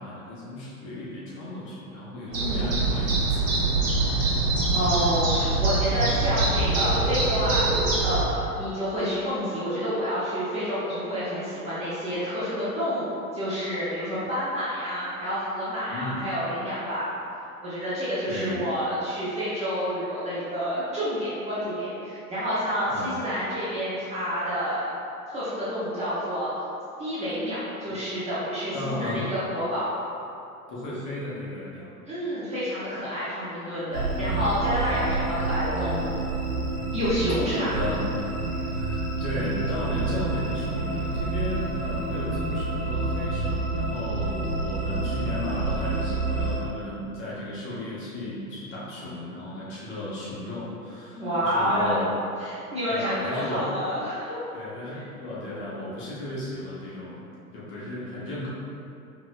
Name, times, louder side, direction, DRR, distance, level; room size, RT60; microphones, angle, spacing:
voice 1, 0.0-4.0 4.5-4.7 15.9-16.4 18.3-18.7 22.9-23.2 27.9-28.0 28.7-29.3 30.7-32.0 34.9-35.1 37.7-38.0 38.6-52.1 52.9-53.7 54.5-58.5, left 1 dB, 25° left, -7 dB, 0.9 m, -35 dB
voice 2, 2.3-2.8 4.7-7.6 8.0-17.1 17.6-24.9 25.3-26.5 27.0-29.9 32.1-36.1 36.9-37.7 51.2-52.0 52.4-54.4, equal, 15° right, -11 dB, 0.7 m, -29 dB
sound 1, 2.3-8.2, right 3 dB, 60° right, 1.1 m, -24 dB
sound 2, 33.9-46.6, right 2 dB, 80° right, 1.1 m, -28 dB
4.8 x 3.0 x 2.4 m, 2.7 s
figure-of-eight pair, 100°, 45 cm